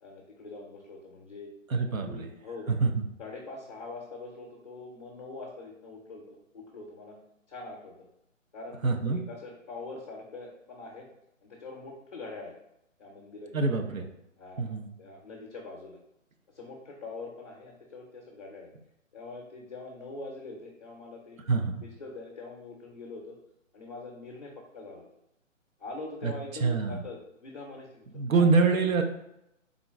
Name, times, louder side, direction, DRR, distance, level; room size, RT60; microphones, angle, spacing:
voice 1, 0.0-1.5 1.9-2.7 3.2-7.2 7.5-7.9 8.5-11.1 11.4-12.5 13.0-14.1 14.4-16.0 16.5-18.7 19.1-21.4 21.8-23.4 23.7-25.1 25.8-28.8, left 3 dB, 30° left, -1 dB, 0.5 m, -43 dB
voice 2, 1.7-2.3 2.7-3.0 8.8-9.2 13.5-14.0 14.6-14.9 21.5-21.8 26.2-26.3 26.6-27.0 28.1-29.0, right 4 dB, 85° right, 6 dB, 0.7 m, -25 dB
3.7 x 2.1 x 3.5 m, 0.83 s
figure-of-eight pair, 150°, 40 cm